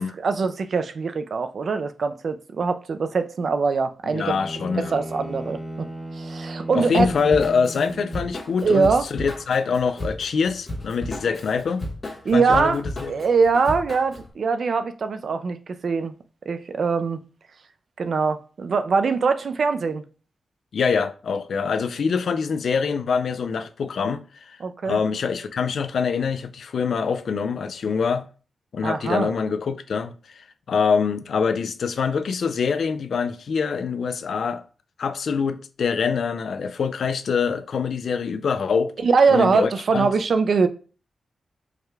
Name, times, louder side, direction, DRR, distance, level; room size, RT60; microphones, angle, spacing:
voice 1, 0.0-4.4 4.8-5.6 6.2-7.1 8.6-9.1 12.3-15.6 15.8-16.1 16.5-17.2 18.0-20.0 24.6-25.0 28.8-29.3 39.0-40.7, right 4 dB, 55° right, 0.3 m, -22 dB
Bowed string instrument, 4.0-8.9, right 1 dB, 10° left, 0.6 m, -36 dB
voice 2, 4.1-5.0 6.7-11.8 12.3-13.1 20.7-24.6 24.8-28.2 28.7-34.6 35.0-38.9 39.3-40.1, left 5 dB, 65° left, 0.3 m, -24 dB
Drum kit / Drum, 6.9-14.3, left 1 dB, 25° left, 1.2 m, -34 dB
4.7 x 2.2 x 3.3 m
wide cardioid pair, 160°, 0 cm